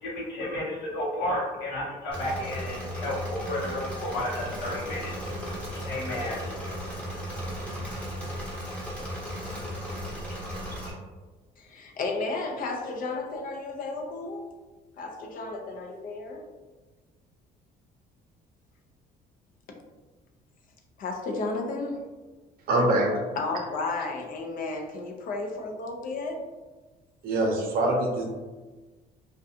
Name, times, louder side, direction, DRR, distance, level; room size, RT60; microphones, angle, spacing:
voice 1, 0.0-7.0, left 1 dB, 90° left, -4 dB, 0.8 m, -33 dB
Engine / Mechanisms, 2.1-10.9, equal, 5° left, 0.7 m, -35 dB
voice 2, 11.6-14.4 15.0-16.4 21.0-22.0 23.4-26.4, left 3 dB, 55° left, 2 dB, 0.5 m, -33 dB
voice 3, 22.7-23.1 27.2-28.2, right 1 dB, 60° right, 1 dB, 0.6 m, -24 dB
2.5 x 2.2 x 2.7 m, 1.3 s
cardioid pair, 110°, 17 cm